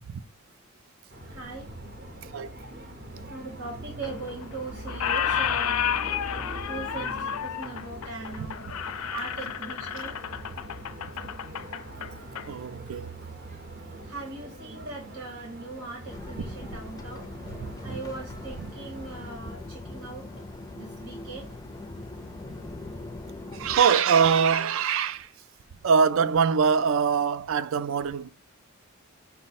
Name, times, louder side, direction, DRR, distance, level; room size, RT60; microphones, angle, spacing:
sound 1, 1.1-19.4, right 1 dB, 45° right, 0.7 m, -43 dB
voice 1, 1.3-1.7 2.3-2.5 3.0-6.0 6.7-8.6 9.1-10.2 14.0-17.3 17.8-20.2 20.7-21.5, right 3 dB, 85° right, 1.2 m, -40 dB
Squeak, 4.0-4.6 4.9-12.5, left 8 dB, 85° left, 0.4 m, -31 dB
voice 2, 12.5-13.1 23.5-25.3 25.8-28.3, right 6 dB, 65° right, 0.3 m, -23 dB
sound 2, 16.1-23.8, left 2 dB, 15° left, 0.4 m, -41 dB
5.5 x 2.1 x 4.1 m
head